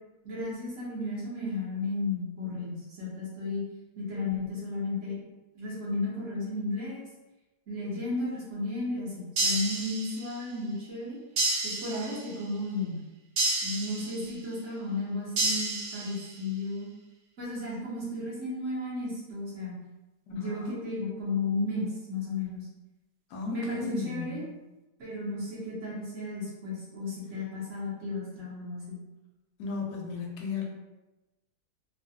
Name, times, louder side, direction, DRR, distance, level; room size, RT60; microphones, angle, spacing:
voice 1, 0.2-3.6 4.0-5.2 5.5-7.1 7.7-11.2 11.6-13.0 13.6-16.9 17.4-19.7 20.3-22.7 23.4-24.4 25.0-29.0, left 2 dB, 55° right, -7 dB, 1.1 m, -34 dB
sound 1, 9.4-10.4 11.4-12.4 13.4-14.4 15.4-16.4, right 2 dB, 80° right, 1.2 m, -30 dB
voice 2, 20.3-20.8 23.3-24.5 27.3-27.4 29.6-30.7, left 4 dB, 75° left, 0 dB, 1.1 m, -35 dB
3.1 x 2.2 x 2.6 m, 1.0 s
omnidirectional pair, 1.8 m